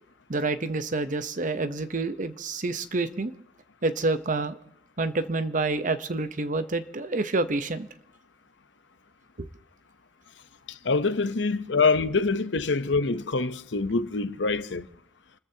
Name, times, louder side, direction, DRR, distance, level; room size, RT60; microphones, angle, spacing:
voice 1, 0.3-3.3 3.8-4.6 5.0-7.9 9.4-9.5, right 3 dB, 45° right, 0.9 m, -28 dB
voice 2, 10.7-14.9, left 4 dB, 80° left, 0.8 m, -25 dB
30.0 x 14.0 x 2.9 m
head